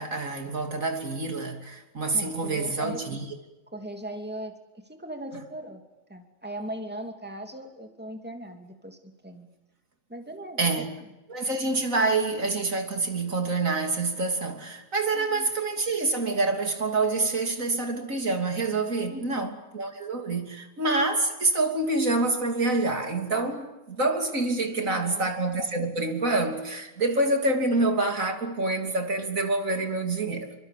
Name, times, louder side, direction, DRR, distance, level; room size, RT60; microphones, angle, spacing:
voice 1, 0.0-3.2 10.6-10.9 11.3-30.6, right 3 dB, 80° right, 4 dB, 3.5 m, -27 dB
voice 2, 2.1-3.1 3.7-4.5 4.9-5.8 6.1-9.5 10.1-10.7 15.1-15.5 19.1-19.5 24.8-25.3, right 1 dB, 5° right, 4 dB, 2.9 m, -39 dB
28.5 x 24.5 x 8.5 m, 1.0 s
omnidirectional pair, 1.4 m